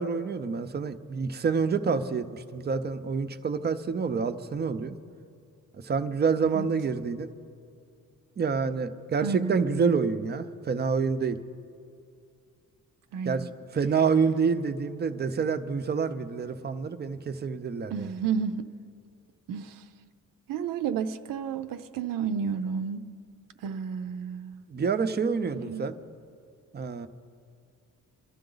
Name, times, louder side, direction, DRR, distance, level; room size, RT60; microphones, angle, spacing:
voice 1, 0.0-5.0 5.8-7.3 8.4-11.4 13.3-18.1 24.7-25.9 26.7-27.1, right 5 dB, 30° right, 0.7 m, -27 dB
voice 2, 9.2-9.6 13.1-13.5 17.9-18.7 19.5-19.8 20.5-23.0 23.6-24.6 25.5-25.9, right 6 dB, 85° right, 0.7 m, -31 dB
25.0 x 13.0 x 3.9 m
wide cardioid pair, 155°, 33 cm